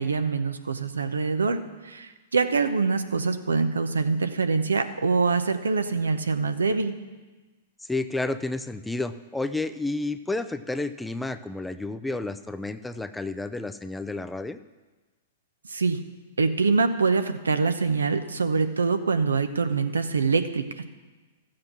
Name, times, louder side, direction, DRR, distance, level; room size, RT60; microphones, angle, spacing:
voice 1, 0.0-7.0 15.7-16.0 16.4-20.8, right 4 dB, 85° right, 9 dB, 0.8 m, -24 dB
voice 2, 7.8-14.6, left 2 dB, 5° left, 10 dB, 0.5 m, -31 dB
13.5 x 7.7 x 6.0 m, 1.2 s
hypercardioid pair, 110°, 0 cm